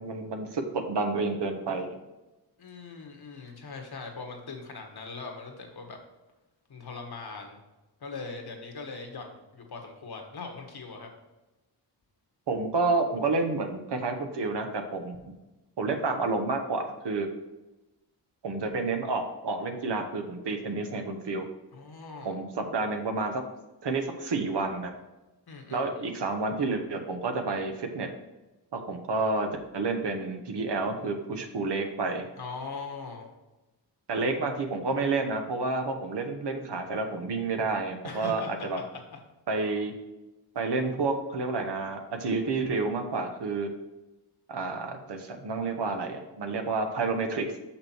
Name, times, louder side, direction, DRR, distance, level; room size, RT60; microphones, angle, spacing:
voice 1, 0.0-1.9 12.5-15.3 15.8-17.3 18.4-21.4 22.2-23.4 23.8-24.9 25.7-28.1 28.7-32.3 34.1-38.8 39.5-39.9 40.5-43.7 44.5-47.5, right 3 dB, 70° right, 5 dB, 1.2 m, -30 dB
voice 2, 2.6-6.0 6.7-7.6 8.0-11.1 21.7-22.4 25.5-25.8 32.4-33.3 38.0-39.2, left 4 dB, 60° left, 3 dB, 1.5 m, -41 dB
6.4 x 5.9 x 4.5 m, 1.1 s
wide cardioid pair, 100°, 43 cm